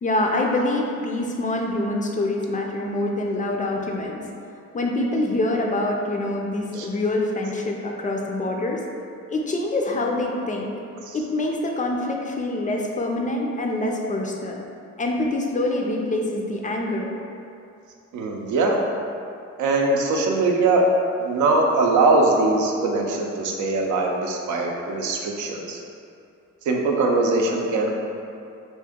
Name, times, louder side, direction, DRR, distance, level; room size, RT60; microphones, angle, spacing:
voice 1, 0.0-4.2 4.7-8.8 9.3-10.7 11.1-14.6 15.0-17.1, left 2 dB, 25° left, 0 dB, 0.3 m, -25 dB
voice 2, 18.1-18.8 19.6-20.9 21.2-25.8 26.7-28.0, right 3 dB, 75° right, 0 dB, 0.5 m, -21 dB
2.9 x 2.6 x 3.5 m, 2.6 s
cardioid pair, 90°, 30 cm